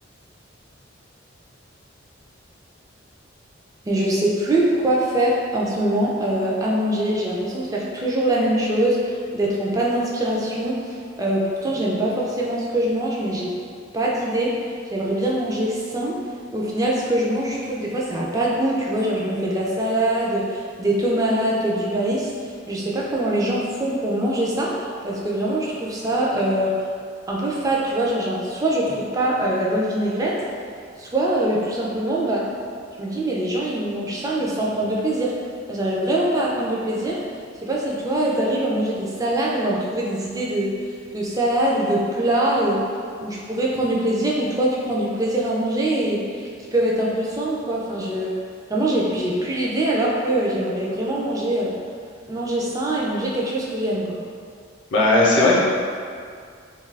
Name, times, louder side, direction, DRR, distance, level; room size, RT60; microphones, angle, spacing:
voice 1, 3.9-13.6 13.9-16.2 16.5-22.3 22.7-26.8 27.3-30.4 31.0-32.5 33.0-35.4 35.7-37.2 37.6-40.8 41.1-42.9 43.2-46.4 46.7-48.3 48.7-51.7 52.3-54.2, right 1 dB, 15° right, -4 dB, 0.3 m, -23 dB
voice 2, 54.9-55.6, left 2 dB, 65° left, -4 dB, 0.6 m, -16 dB
2.7 x 2.3 x 3.2 m, 2.2 s
head